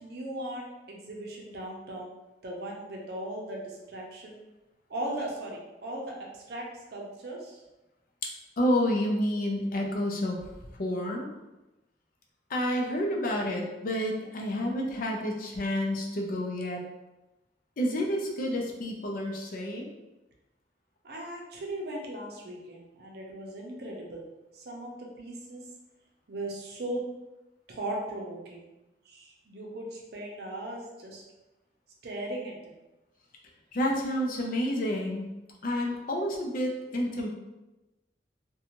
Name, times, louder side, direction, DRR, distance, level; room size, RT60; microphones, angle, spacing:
voice 1, 0.0-2.1 2.4-4.4 4.9-7.6 21.0-24.2 24.5-24.9 25.2-25.6 26.3-27.0 27.7-28.7 29.0-31.2 32.0-32.7, right 1 dB, 60° right, -1 dB, 0.6 m, -38 dB
voice 2, 8.6-10.4 10.8-11.3 12.5-16.8 17.8-19.9 33.7-35.3 35.6-37.3, equal, 50° left, 0 dB, 0.5 m, -29 dB
2.5 x 2.2 x 2.9 m, 1.0 s
head